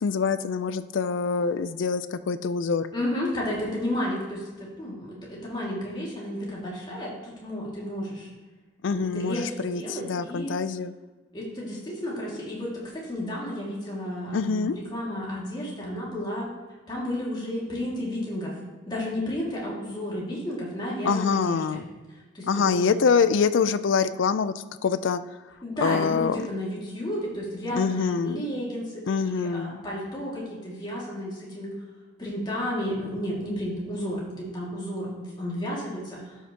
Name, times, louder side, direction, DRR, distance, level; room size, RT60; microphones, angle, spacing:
voice 1, 0.0-2.9 8.8-10.9 14.3-14.8 21.1-21.8 22.5-25.2 25.8-26.5 27.7-28.4 29.1-29.8, left 5 dB, 70° left, 13 dB, 0.4 m, -25 dB
voice 2, 2.9-8.3 8.9-10.5 11.3-16.5 16.9-18.6 18.9-21.8 22.3-22.9 25.6-31.7 32.2-36.5, equal, 20° left, -5 dB, 2.1 m, -32 dB
12.0 x 5.8 x 2.9 m, 1.3 s
head